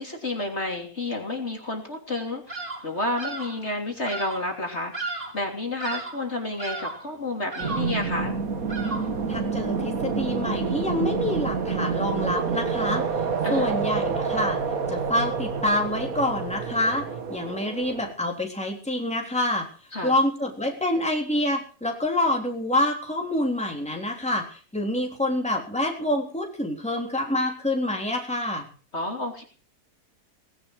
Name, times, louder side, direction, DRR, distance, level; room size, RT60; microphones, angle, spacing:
voice 1, 0.0-4.9 5.3-8.3 13.4-13.8 19.9-20.1 28.9-29.4, left 2 dB, 40° left, 3 dB, 3.4 m, -30 dB
Bird vocalization bird call bird song, 2.5-2.9 3.2-3.6 4.1-4.5 4.9-5.5 5.8-6.3 6.6-7.1 7.5-8.0 8.7-9.2, right 3 dB, 30° right, 2.6 m, -34 dB
sound 1, 7.6-18.1, right 5 dB, 60° right, 2.0 m, -28 dB
voice 2, 9.3-13.0 13.5-14.6 14.9-19.7 20.0-28.7, left 1 dB, 5° left, 1 dB, 3.5 m, -27 dB
19.0 x 11.0 x 6.2 m, 0.40 s
omnidirectional pair, 1.7 m